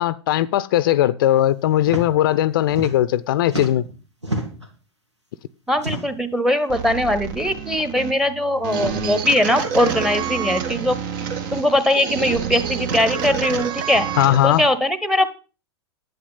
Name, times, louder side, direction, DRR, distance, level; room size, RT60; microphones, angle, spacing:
voice 1, 0.0-3.9 14.2-14.7, left 13 dB, 50° left, 0.6 m, -19 dB
sound 1, 1.8-2.1 2.4-3.2 3.5-4.7 5.7-6.3 7.2-7.4 7.7-7.8 8.7-9.0 10.1-10.2 11.4-11.7 12.8-13.0, right 1 dB, 85° right, 2.5 m, -31 dB
voice 2, 5.7-11.0 11.5-14.1 14.4-15.3, left 1 dB, 5° right, 1.3 m, -20 dB
sound 2, 6.7-14.6, right 7 dB, 45° right, 1.8 m, -28 dB
11.5 x 9.2 x 5.6 m
figure-of-eight pair, 90°, 14 cm